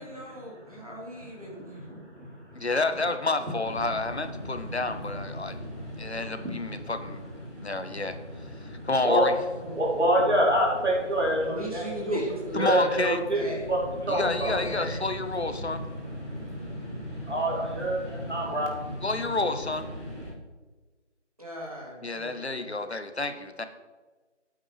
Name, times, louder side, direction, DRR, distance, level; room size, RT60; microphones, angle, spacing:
voice 1, 0.0-1.9 9.6-10.5 11.4-13.0 13.3-13.6 14.0-14.8 21.4-22.7, equal, 30° right, -3 dB, 2.1 m, -39 dB
voice 2, 1.8-2.6 5.9-6.6 8.6-8.7 9.0-9.2 9.8-12.2 12.5-13.8 14.0-14.5 16.2-16.8 17.2-18.7, right 1 dB, 70° right, -3 dB, 3.3 m, -27 dB
voice 3, 2.5-5.6 6.0-7.2 7.6-8.2 8.6-9.4 12.5-13.2 14.1-15.8 19.0-19.9 22.0-23.6, left 3 dB, 60° left, 9 dB, 1.1 m, -29 dB
sound 1, 3.6-20.3, equal, 25° left, 2.7 m, -39 dB
13.5 x 8.7 x 3.2 m, 1.3 s
figure-of-eight pair, 175°, 36 cm